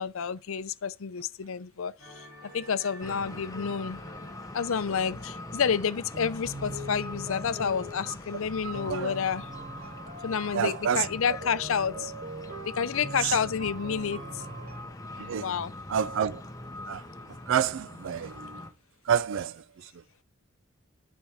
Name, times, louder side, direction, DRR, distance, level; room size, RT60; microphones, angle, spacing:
voice 1, 0.0-2.3 2.5-4.0 4.5-9.5 10.2-12.1 12.6-14.4 15.3-15.7, left 6 dB, 70° left, 0.5 m, -29 dB
sound 1, 2.0-10.7 10.9-11.2, left 1 dB, 15° right, 5.8 m, -53 dB
sound 2, 3.0-18.7, left 1 dB, 15° left, 0.9 m, -43 dB
sound 3, 6.1-8.3 8.7-14.9, right 1 dB, 40° right, 3.4 m, -42 dB
voice 2, 8.6-9.1 10.5-11.1 15.2-15.5 15.9-16.4 16.9-17.0 17.5-18.6 19.1-19.6, right 8 dB, 65° right, 0.4 m, -28 dB
9.4 x 4.3 x 5.0 m
head